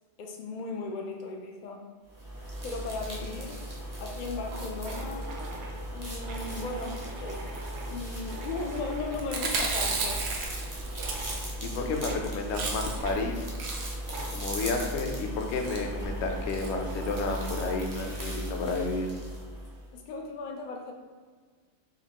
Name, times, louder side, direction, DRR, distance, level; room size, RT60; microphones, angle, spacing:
voice 1, 0.2-1.8 2.6-3.6 4.0-5.3 5.9-7.5 7.8-10.3 19.9-20.9, left 3 dB, 90° left, 1 dB, 0.4 m, -37 dB
sound 1, 2.1-19.9, equal, 30° right, 0.3 m, -37 dB
sound 2, 4.4-9.3 9.7-10.3 10.9-11.5 12.0-12.3 13.0-13.2 14.0-14.4 15.1-17.9, right 3 dB, 65° right, 0.8 m, -43 dB
Chewing mastication, 9.2-11.8 12.1-12.2 12.4-13.1 13.4-14.1 14.6-14.9 15.5-15.8 16.5-16.7 17.0-17.1 17.3-17.4, right 4 dB, 85° right, 1.1 m, -33 dB
voice 2, 11.6-13.5 14.3-19.1, left 3 dB, 65° left, 3 dB, 0.7 m, -31 dB
4.4 x 2.4 x 2.8 m, 1.5 s
omnidirectional pair, 1.4 m